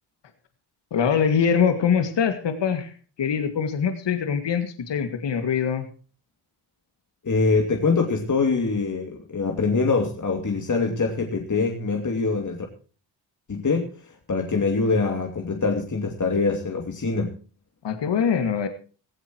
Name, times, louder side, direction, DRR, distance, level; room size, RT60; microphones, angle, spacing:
voice 1, 0.9-2.9 3.2-5.9 17.8-18.7, left 7 dB, 55° left, 8 dB, 2.2 m, -23 dB
voice 2, 7.2-12.7 13.5-17.3, left 4 dB, 35° left, 3 dB, 2.7 m, -24 dB
16.5 x 16.0 x 3.0 m, 0.38 s
supercardioid pair, 50°, 50 cm